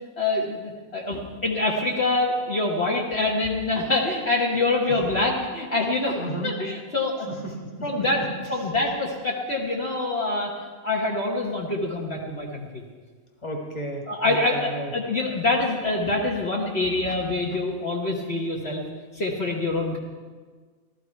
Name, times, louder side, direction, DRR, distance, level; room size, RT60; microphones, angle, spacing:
voice 1, 0.2-7.3 7.8-10.5 10.8-12.8 14.1-18.8 19.1-20.0, left 2 dB, 50° left, -2 dB, 1.6 m, -25 dB
voice 2, 6.2-6.5 7.3-7.5 7.8-7.9 13.4-14.9, right 1 dB, 20° left, 0 dB, 1.9 m, -33 dB
15.0 x 13.5 x 4.6 m, 1.5 s
omnidirectional pair, 1.5 m